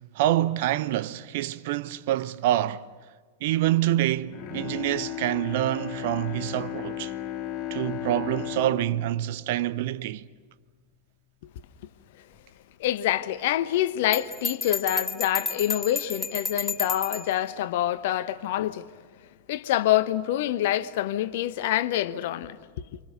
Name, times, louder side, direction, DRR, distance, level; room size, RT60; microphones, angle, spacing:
voice 1, 0.0-2.9 3.4-7.1 7.7-10.2, right 14 dB, 50° right, 0.8 m, -26 dB
Bowed string instrument, 4.3-10.5 10.9-11.0, left 11 dB, 35° left, 3.0 m, -36 dB
voice 2, 12.8-18.9 19.5-23.0, left 13 dB, 55° left, 1.0 m, -26 dB
Bell, 14.1-17.3, left 4 dB, 10° left, 1.6 m, -31 dB
29.5 x 25.5 x 6.6 m
figure-of-eight pair, 90°, 0 cm